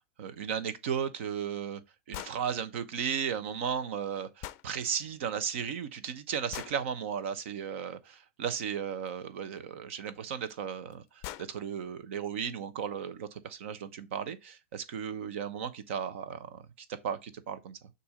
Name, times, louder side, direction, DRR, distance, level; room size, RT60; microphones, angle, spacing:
voice 1, 0.2-1.8 2.1-16.6 17.0-17.8, right 7 dB, 60° right, 1.0 m, -35 dB
sound 1, 2.1-2.4 4.4-4.7 6.5-6.8 9.1-9.2 10.5-10.6 10.9-11.0 11.2-11.5, left 16 dB, 40° left, 0.4 m, -41 dB
6.9 x 2.7 x 5.0 m
hypercardioid pair, 135°, 7 cm